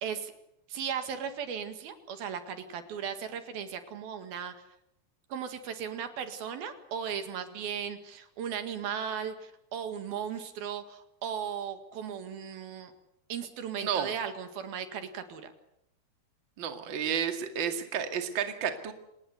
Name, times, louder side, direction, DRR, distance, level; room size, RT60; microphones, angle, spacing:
voice 1, 0.0-0.3 0.7-4.5 5.3-12.9 13.3-15.5, right 7 dB, 70° right, 8 dB, 3.7 m, -36 dB
voice 2, 13.8-14.1 16.6-18.9, right 8 dB, 35° right, 6 dB, 2.5 m, -31 dB
27.0 x 19.5 x 8.2 m, 0.81 s
omnidirectional pair, 4.5 m